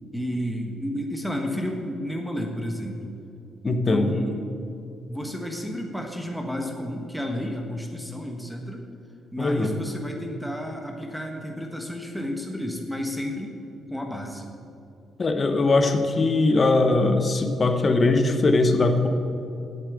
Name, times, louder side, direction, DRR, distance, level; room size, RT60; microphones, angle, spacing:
voice 1, 0.1-3.1 3.6-4.5 5.1-8.9 9.3-13.6 13.9-14.5, equal, ahead, 1 dB, 1.2 m, -31 dB
voice 2, 3.6-4.1 9.4-9.7 15.2-19.1, left 3 dB, 35° left, 6 dB, 1.1 m, -21 dB
8.3 x 7.4 x 8.4 m, 2.7 s
cardioid pair, 90°, 0 cm